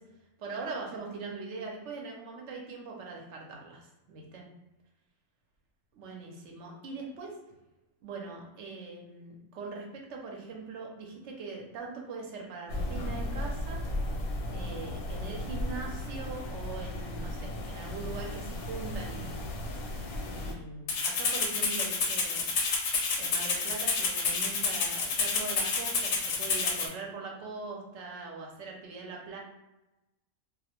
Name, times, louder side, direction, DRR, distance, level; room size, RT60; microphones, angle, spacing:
voice 1, 0.4-4.4 5.9-7.4 8.0-13.8 14.5-19.5 20.3-22.6 23.2-29.4, right 4 dB, 65° right, 0 dB, 0.8 m, -41 dB
sound 1, 12.7-20.5, left 1 dB, 85° left, 1.0 m, -35 dB
Rattle (instrument), 20.9-26.9, left 4 dB, 65° left, 0.7 m, -29 dB
2.3 x 2.0 x 2.8 m, 0.98 s
omnidirectional pair, 1.5 m